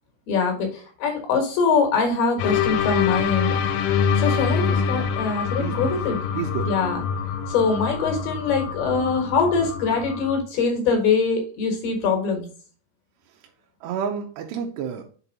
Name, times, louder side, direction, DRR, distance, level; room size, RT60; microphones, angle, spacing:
voice 1, 0.3-3.6 4.2-6.2 6.6-7.0 7.5-12.4, left 5 dB, 65° left, 3 dB, 2.9 m, -23 dB
sound 1, 2.4-10.4, left 7 dB, 85° left, 3.1 m, -25 dB
voice 2, 5.6-6.0 6.3-6.8 13.8-15.1, right 8 dB, 80° right, 1 dB, 2.6 m, -30 dB
6.9 x 4.4 x 4.0 m, 0.42 s
omnidirectional pair, 5.5 m